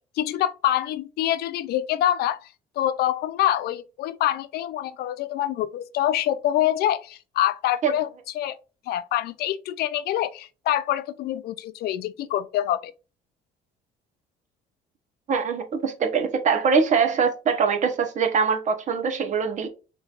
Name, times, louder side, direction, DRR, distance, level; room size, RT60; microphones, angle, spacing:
voice 1, 0.2-2.4 2.8-8.1 8.3-8.6 8.9-12.9, left 12 dB, 70° left, 0.4 m, -25 dB
voice 2, 15.3-19.7, right 6 dB, 45° right, 0.9 m, -23 dB
4.9 x 3.0 x 2.4 m
cardioid pair, 110°, 17 cm